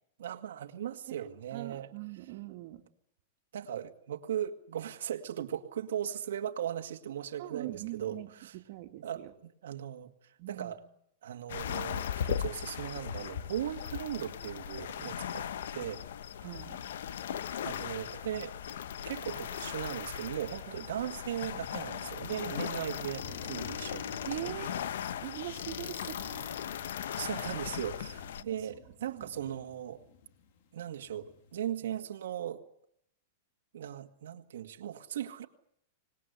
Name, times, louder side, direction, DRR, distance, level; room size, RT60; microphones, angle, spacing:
voice 1, 0.2-1.9 3.5-8.5 9.0-9.2 9.6-10.8 11.2-16.0 17.6-18.5 19.1-24.6 27.2-30.0 30.7-32.6 33.7-35.5, right 10 dB, 80° right, 2.0 m, -38 dB
voice 2, 1.1-2.8 7.4-9.3 10.4-10.8 16.4-16.8 24.2-24.7 25.2-26.5 27.2-27.4 28.4-28.6 29.1-29.3, right 17 dB, 45° right, 2.3 m, -42 dB
sound 1, 11.5-28.4, left 9 dB, 75° left, 1.0 m, -38 dB
sound 2, 21.5-31.8, left 5 dB, 50° left, 2.9 m, -54 dB
26.0 x 20.0 x 8.2 m
supercardioid pair, 165°, 0 cm